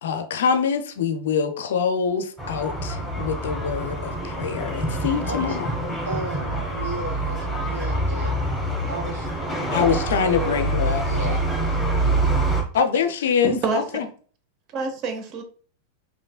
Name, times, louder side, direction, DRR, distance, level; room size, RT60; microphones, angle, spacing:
voice 1, 0.0-5.7 9.7-11.0 12.7-14.1, left 6 dB, 60° left, 0.5 m, -24 dB
sound 1, 2.4-12.6, right 1 dB, 10° right, 1.2 m, -26 dB
voice 2, 5.2-5.6 6.1-8.3 8.9-9.3 10.2-10.6 11.0-12.2, right 2 dB, 70° right, 0.6 m, -34 dB
voice 3, 13.4-14.1 14.7-15.4, right 4 dB, 35° right, 0.8 m, -27 dB
5.2 x 3.1 x 2.3 m
figure-of-eight pair, 90°, 0 cm